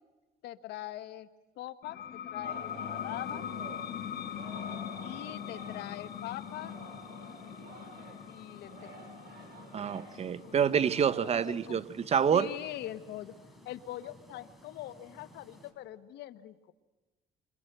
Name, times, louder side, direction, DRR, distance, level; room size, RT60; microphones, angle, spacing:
voice 1, 0.4-1.3 1.6-3.4 5.0-6.7 8.3-9.0 10.4-10.7 11.3-11.8 12.3-13.3 13.6-16.7, left 14 dB, 80° left, 1.2 m, -42 dB
sound 1, 1.8-13.1, left 9 dB, 60° left, 1.3 m, -42 dB
sound 2, 2.3-15.7, equal, ahead, 4.4 m, -57 dB
Singing, 2.4-6.0 6.3-11.2, right 3 dB, 65° right, 7.1 m, -50 dB
voice 2, 9.7-12.5, right 7 dB, 40° right, 0.8 m, -27 dB
29.0 x 25.5 x 7.9 m
cardioid pair, 110°, 17 cm